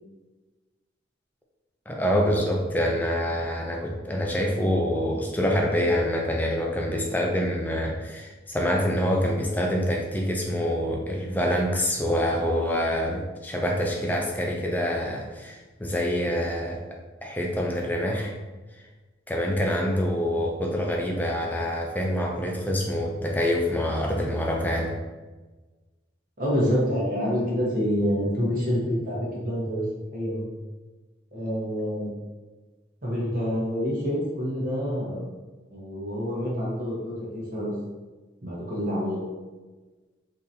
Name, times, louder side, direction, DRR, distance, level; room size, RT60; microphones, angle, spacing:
voice 1, 1.9-18.3 19.3-24.9, equal, 10° left, 0 dB, 0.4 m, -26 dB
voice 2, 26.4-29.8 30.1-30.4 31.3-32.1 33.0-35.3 35.7-37.7 38.4-39.2, equal, 45° right, -5 dB, 1.1 m, -27 dB
3.8 x 2.8 x 2.7 m, 1.2 s
head